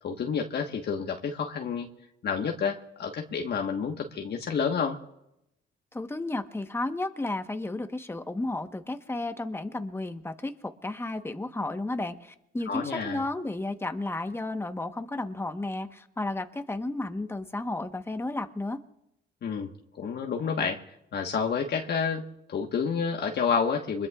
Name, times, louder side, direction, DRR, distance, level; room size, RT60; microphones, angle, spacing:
voice 1, 0.0-1.9 2.2-5.0 12.7-13.2 19.4-19.7 20.0-20.8 21.1-24.1, left 6 dB, 55° left, 2 dB, 1.4 m, -29 dB
voice 2, 5.9-18.8, left 2 dB, 10° left, 7 dB, 1.1 m, -33 dB
26.0 x 21.0 x 2.4 m, 0.84 s
cardioid pair, 90°, 20 cm